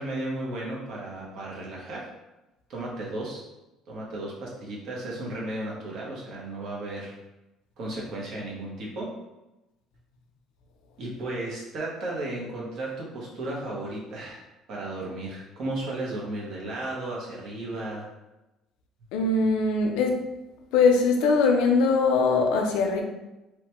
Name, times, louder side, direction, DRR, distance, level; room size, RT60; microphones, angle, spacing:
voice 1, 0.0-2.1 2.7-3.4 3.9-7.2 7.8-9.1 11.0-18.1, right 2 dB, 50° right, -4 dB, 0.8 m, -34 dB
voice 2, 19.1-20.2 20.7-23.0, left 4 dB, 85° left, 2 dB, 0.5 m, -21 dB
3.0 x 2.1 x 2.9 m, 0.99 s
cardioid pair, 160°, 0 cm